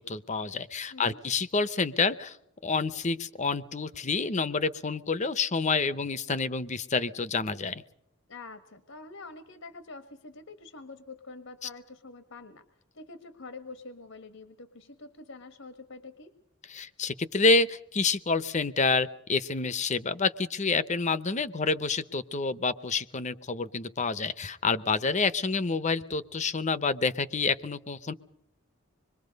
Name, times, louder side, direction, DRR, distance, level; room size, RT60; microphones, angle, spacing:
voice 1, 0.0-2.4 2.6-7.8 16.7-28.1, left 4 dB, 35° left, 14 dB, 0.8 m, -28 dB
voice 2, 0.9-1.2 8.3-12.6 12.9-16.3, left 3 dB, 80° left, 10 dB, 1.4 m, -46 dB
26.0 x 22.5 x 5.3 m, 0.77 s
head